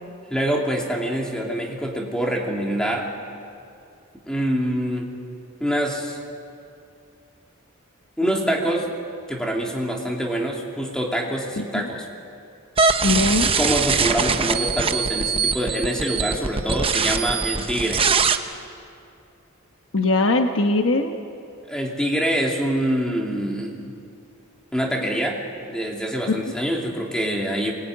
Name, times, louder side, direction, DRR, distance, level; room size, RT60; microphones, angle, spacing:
voice 1, 0.3-3.1 4.3-5.1 5.6-6.2 8.2-8.9 9.3-12.1 13.6-18.1 21.7-23.9 24.7-25.4 25.7-27.7, right 1 dB, 5° left, 0 dB, 2.7 m, -25 dB
voice 2, 11.6-11.9 13.0-13.5 19.9-21.1 26.3-26.4, left 2 dB, 65° left, 5 dB, 1.2 m, -20 dB
sound 1, 12.8-18.4, right 5 dB, 25° right, 0.9 m, -22 dB
24.0 x 20.5 x 9.4 m, 2.5 s
head